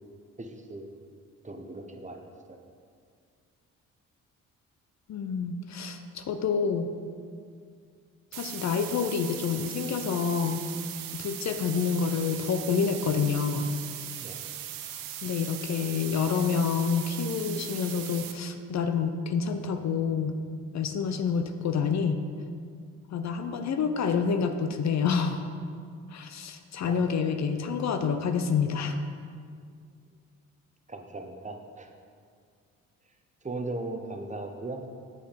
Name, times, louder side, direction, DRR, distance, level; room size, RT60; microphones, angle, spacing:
voice 1, 0.4-0.9 1.4-2.2 2.5-2.6 14.2-14.4 26.9-27.1 30.9-31.9 33.4-34.8, right 2 dB, 20° right, 4 dB, 0.8 m, -38 dB
voice 2, 5.1-6.9 8.3-10.6 11.1-13.7 15.2-20.3 20.7-22.2 23.1-25.4 26.1-29.0, left 6 dB, 55° left, 8 dB, 0.6 m, -28 dB
sound 1, 8.3-18.3, right 11 dB, 80° right, 0.6 m, -39 dB
7.0 x 5.0 x 5.1 m, 2.1 s
supercardioid pair, 60°, 33 cm